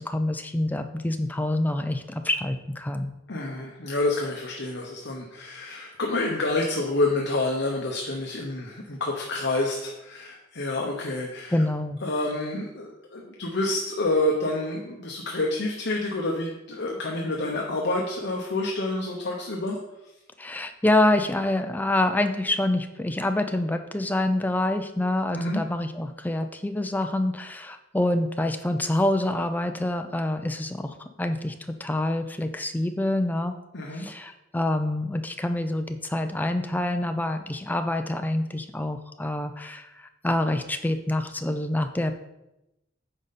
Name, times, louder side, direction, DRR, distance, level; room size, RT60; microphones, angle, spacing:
voice 1, 0.1-3.1 11.5-12.0 20.4-31.5 31.8-33.5 33.9-42.1, left 1 dB, 10° left, 7 dB, 0.5 m, -26 dB
voice 2, 3.3-11.6 12.0-19.8 25.3-25.6 33.7-34.1, left 2 dB, 60° left, 0 dB, 1.0 m, -28 dB
9.0 x 5.2 x 4.2 m, 0.91 s
head